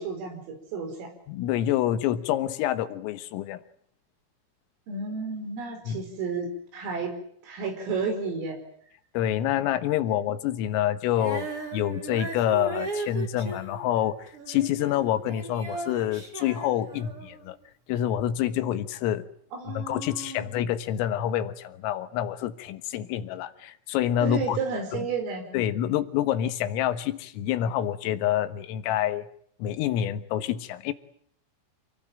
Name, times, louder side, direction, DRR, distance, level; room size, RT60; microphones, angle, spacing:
voice 1, 0.0-1.1 4.9-6.5 6.7-7.1 7.4-8.6 10.1-10.2 19.5-20.5 24.2-25.5, right 4 dB, 80° right, 4 dB, 7.7 m, -32 dB
voice 2, 1.3-3.6 5.9-6.0 9.2-11.5 11.7-17.6 17.9-19.3 19.7-24.6 24.9-25.1 25.5-29.3 29.6-30.9, left 11 dB, 85° left, 11 dB, 4.0 m, -27 dB
Female singing, 11.1-17.5 18.2-18.3, right 3 dB, 30° right, 4.7 m, -37 dB
28.5 x 18.5 x 9.0 m, 0.66 s
omnidirectional pair, 5.8 m